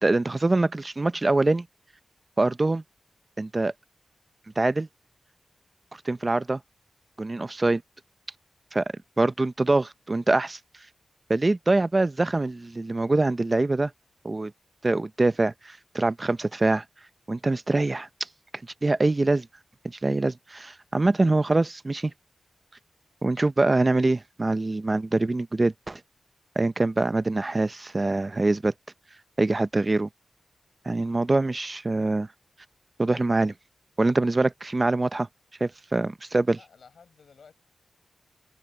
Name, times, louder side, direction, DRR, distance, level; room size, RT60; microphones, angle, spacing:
voice 1, 0.0-1.7 2.4-2.8 3.4-3.7 4.6-4.9 6.0-6.6 7.2-7.8 8.7-8.8 9.2-10.6 11.3-13.9 14.2-14.5 14.8-16.8 17.3-18.1 18.8-19.5 19.8-22.1 23.2-26.0 26.6-28.7 29.4-30.1 30.9-32.3 33.0-33.5 34.0-35.3 35.6-36.6, right 2 dB, 25° right, 0.6 m, -24 dB
voice 2, 36.6-37.5, left 6 dB, 65° left, 7.1 m, -53 dB
wide cardioid pair, 140°, 0 cm